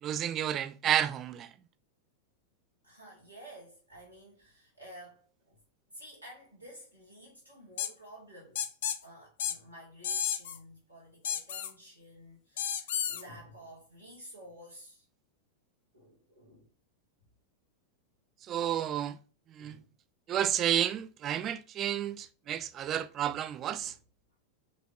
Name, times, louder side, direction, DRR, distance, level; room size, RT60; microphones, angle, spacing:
voice 1, 0.0-1.5 18.5-19.2 19.5-19.8 20.3-23.9, right 10 dB, 30° right, 0.4 m, -31 dB
voice 2, 2.8-5.6 5.9-8.8 9.0-15.1 15.9-16.7 19.6-19.9 22.4-22.6 23.8-23.9, equal, 90° left, 2.0 m, -52 dB
sound 1, 7.8-7.9 8.6-9.0 9.4-9.6 10.0-10.6 11.2-11.7 12.6-13.2, left 9 dB, 55° left, 0.4 m, -32 dB
5.1 x 3.0 x 2.5 m
figure-of-eight pair, 90°, 0 cm